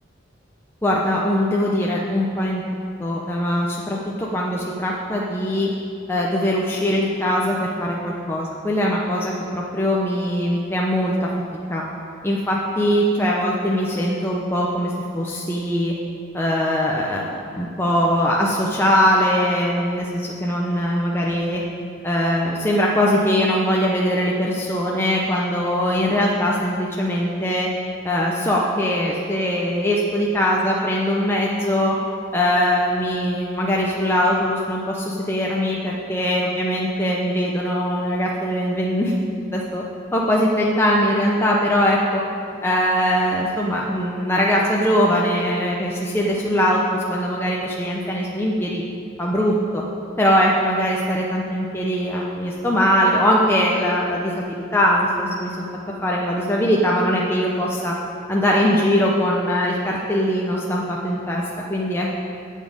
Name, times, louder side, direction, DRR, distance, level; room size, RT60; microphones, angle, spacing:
voice 1, 0.8-2.6 3.0-5.7 6.1-11.3 11.7-11.8 12.2-15.9 16.3-21.6 22.0-27.7 28.0-32.0 32.3-39.1 39.5-39.8 40.1-42.2 42.6-48.8 49.2-49.8 50.2-55.5 56.0-57.9 58.3-61.4 61.7-62.2, equal, 10° left, -3 dB, 0.8 m, -21 dB
8.8 x 7.5 x 8.9 m, 2.4 s
head